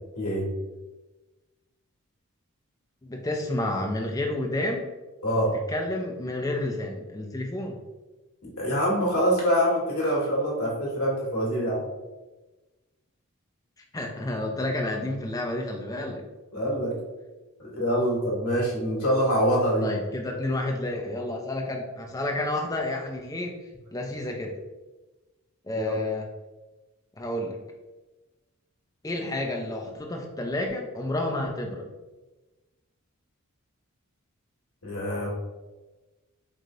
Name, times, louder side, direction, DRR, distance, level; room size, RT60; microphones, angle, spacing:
voice 1, 0.2-0.5 5.2-5.5 8.6-11.8 16.5-17.0 17.6-19.9 25.7-26.0 34.8-35.3, equal, 80° left, -3 dB, 1.4 m, -25 dB
voice 2, 3.0-4.9 5.7-7.8 13.9-16.2 19.8-23.6 23.9-24.6 25.6-26.3 27.2-27.6 29.0-31.9, left 1 dB, 15° left, 1 dB, 0.4 m, -30 dB
4.7 x 2.8 x 2.5 m, 1.1 s
head